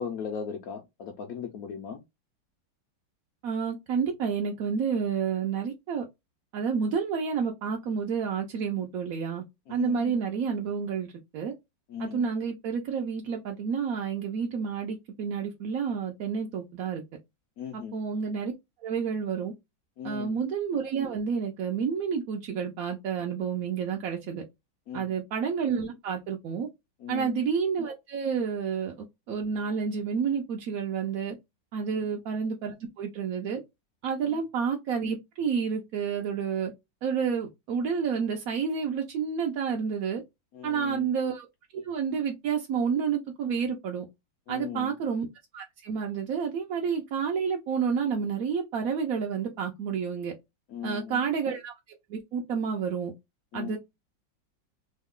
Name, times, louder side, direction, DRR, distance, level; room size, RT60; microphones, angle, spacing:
voice 1, 0.0-2.0 9.7-10.1 11.9-12.3 17.6-18.0 20.0-20.4 24.9-25.1 27.0-27.4 34.2-34.4 40.5-41.1 44.5-45.0 50.7-51.2 53.5-53.8, left 7 dB, 70° left, 0.9 m, -37 dB
voice 2, 3.4-6.0 6.5-9.4 9.7-11.5 12.0-17.0 17.7-18.5 18.8-19.5 20.0-24.4 24.9-26.7 27.1-31.4 31.7-33.6 34.0-36.7 37.0-40.2 40.6-41.5 41.7-44.0 44.5-45.3 45.5-50.3 50.8-51.7 52.1-53.1 53.5-53.8, right 6 dB, 70° right, 0.9 m, -30 dB
3.1 x 2.2 x 3.5 m
omnidirectional pair, 2.0 m